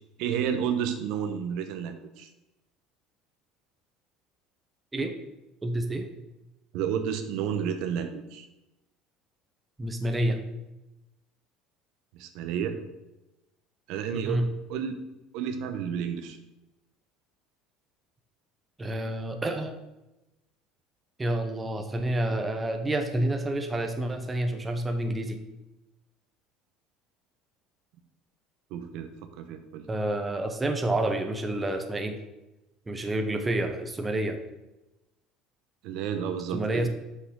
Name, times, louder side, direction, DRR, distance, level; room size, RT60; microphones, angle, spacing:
voice 1, 0.2-2.3 6.7-8.5 12.1-12.8 13.9-14.4 14.7-15.0 15.3-16.4 28.7-29.8 35.8-36.9, right 8 dB, 70° right, 8 dB, 0.9 m, -31 dB
voice 2, 5.6-6.1 9.8-10.4 14.1-14.5 18.8-19.7 21.2-25.4 29.9-32.2 32.9-34.4 36.5-36.9, right 1 dB, 15° right, 5 dB, 1.0 m, -29 dB
6.5 x 5.7 x 6.3 m, 0.98 s
cardioid pair, 125°, 0 cm